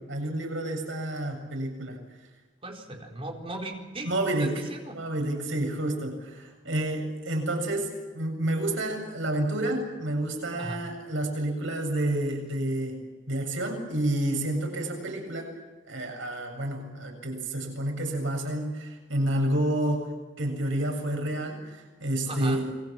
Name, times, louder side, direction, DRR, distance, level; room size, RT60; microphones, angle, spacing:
voice 1, 0.1-2.0 4.0-4.6 4.9-13.0 13.3-15.5 15.9-20.1 20.4-22.7, right 1 dB, 90° right, 3 dB, 7.4 m, -29 dB
voice 2, 2.6-4.1 4.4-5.0 10.6-10.8 22.2-22.6, right 2 dB, 30° right, 1 dB, 4.2 m, -37 dB
29.5 x 22.0 x 7.4 m, 1.3 s
head